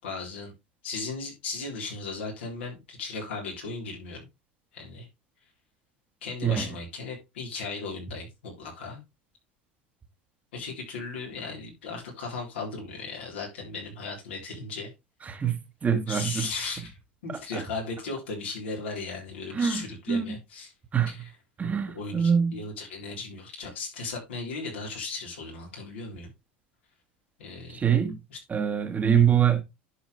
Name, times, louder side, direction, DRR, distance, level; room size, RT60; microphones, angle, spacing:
voice 1, 0.0-0.5 0.8-4.3 4.7-5.1 6.2-9.0 10.5-14.9 16.1-16.9 17.2-20.7 21.1-21.2 21.6-26.3 27.4-27.8 28.3-28.4, left 4 dB, 80° left, 4.0 m, -36 dB
voice 2, 15.2-16.5 17.3-17.6 19.5-20.3 20.9-21.3 21.6-22.6 27.7-28.2 28.5-29.6, right 8 dB, 25° right, 1.4 m, -25 dB
11.0 x 4.8 x 3.3 m
hypercardioid pair, 90°, 6 cm